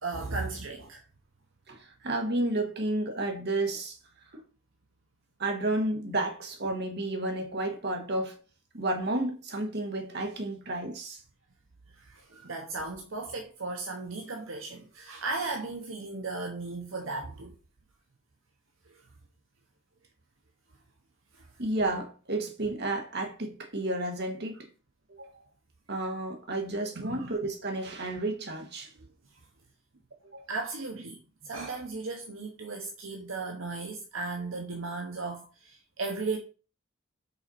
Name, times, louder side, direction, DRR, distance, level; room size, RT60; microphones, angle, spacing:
voice 1, 0.0-1.0 11.9-17.5 18.9-19.0 21.3-21.5 26.9-27.3 29.0-29.4 30.5-36.4, right 3 dB, 70° right, 0.9 m, -36 dB
voice 2, 1.7-4.0 5.4-8.4 8.7-11.2 21.6-24.7 25.1-25.4 25.9-28.9 30.3-30.5, right 2 dB, 50° right, 1.5 m, -31 dB
5.6 x 4.2 x 4.2 m
head